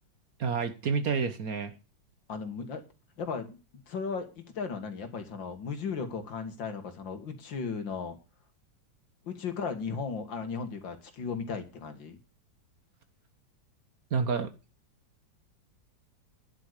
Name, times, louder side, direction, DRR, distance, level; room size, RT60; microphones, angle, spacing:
voice 1, 0.4-1.7 14.1-14.5, right 5 dB, 55° right, 10 dB, 1.5 m, -29 dB
voice 2, 2.3-2.8 3.2-8.2 9.2-12.2, left 5 dB, 75° left, 7 dB, 2.6 m, -36 dB
10.5 x 8.1 x 6.7 m, 0.31 s
omnidirectional pair, 2.1 m